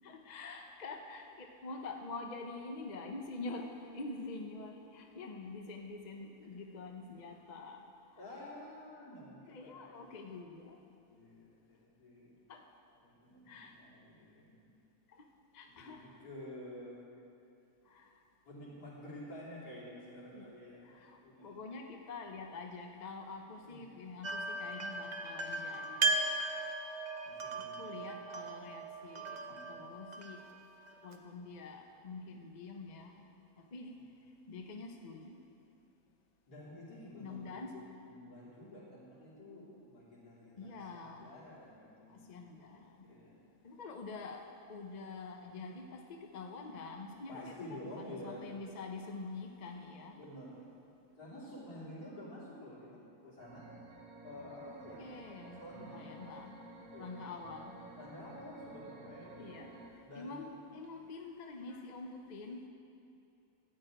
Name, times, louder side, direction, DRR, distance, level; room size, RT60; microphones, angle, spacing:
voice 1, 0.0-8.2 9.5-10.8 12.5-12.6 13.5-13.8 15.1-15.2 15.5-16.2 17.9-18.2 20.3-20.5 20.8-26.2 27.6-30.4 31.0-33.3 33.6-34.0 34.5-35.4 37.2-37.8 40.6-41.3 42.1-43.1 43.6-50.2 54.6-54.7 55.0-56.6 57.0-57.8 59.4-62.7, left 3 dB, 40° left, 3 dB, 0.7 m, -46 dB
voice 2, 8.2-10.2 11.1-12.3 13.0-14.7 15.8-17.0 18.5-20.9 21.1-21.6 23.6-23.9 27.2-28.0 29.5-29.7 36.5-37.6 38.1-42.3 43.0-43.4 47.3-48.5 50.1-50.7 51.1-53.7 54.2-55.2 55.4-56.0 56.9-57.3 58.0-59.7 60.0-60.4, left 1 dB, 80° left, -8 dB, 3.8 m, -50 dB
sound 1, 24.2-31.1, right 3 dB, 45° right, 0.6 m, -37 dB
sound 2, 53.4-59.9, right 2 dB, 65° right, 1.5 m, -53 dB
13.0 x 4.9 x 8.9 m, 2.6 s
omnidirectional pair, 1.6 m